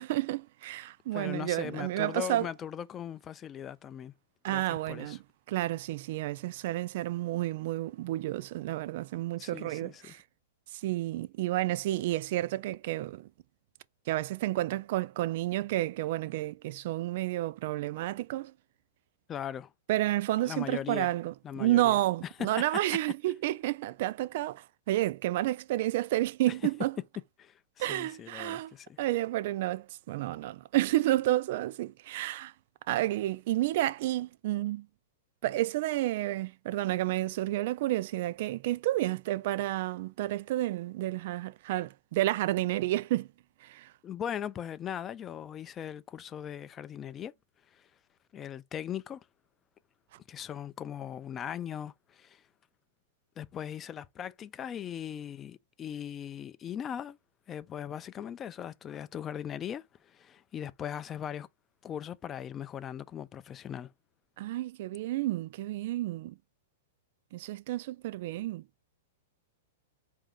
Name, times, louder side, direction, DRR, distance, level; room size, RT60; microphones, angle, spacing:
voice 1, 0.0-2.5 4.4-5.2 5.5-10.2 10.7-13.3 14.1-18.5 19.9-26.9 27.8-32.5 32.9-34.9 35.4-43.3 43.6-43.9 64.4-66.3 67.3-68.6, right 15 dB, 60° right, 0.3 m, -30 dB
voice 2, 1.1-4.1 4.5-5.2 9.4-10.2 19.3-19.7 20.4-21.1 21.4-22.0 27.4-29.0 44.0-47.3 47.7-47.8 48.3-49.2 50.3-52.4 53.4-57.2 57.5-61.5 61.8-63.9, left 9 dB, 25° left, 0.4 m, -39 dB
4.7 x 2.7 x 3.5 m
hypercardioid pair, 125°, 0 cm